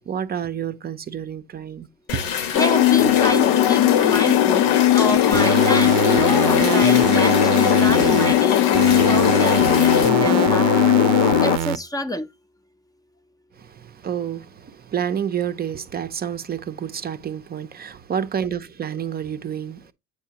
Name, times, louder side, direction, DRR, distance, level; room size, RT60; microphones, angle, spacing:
voice 1, 0.1-2.2 13.6-19.9, right 8 dB, 30° right, 0.6 m, -29 dB
sound 1, 2.1-10.1, left 8 dB, 85° left, 1.2 m, -27 dB
sound 2, 2.5-11.6, left 12 dB, 70° left, 0.6 m, -18 dB
voice 2, 2.5-10.7 11.4-12.3, left 1 dB, 10° left, 0.6 m, -27 dB
sound 3, 5.3-8.3 8.7-11.8, right 11 dB, 70° right, 0.6 m, -24 dB
8.3 x 4.8 x 2.8 m
supercardioid pair, 95°, 30 cm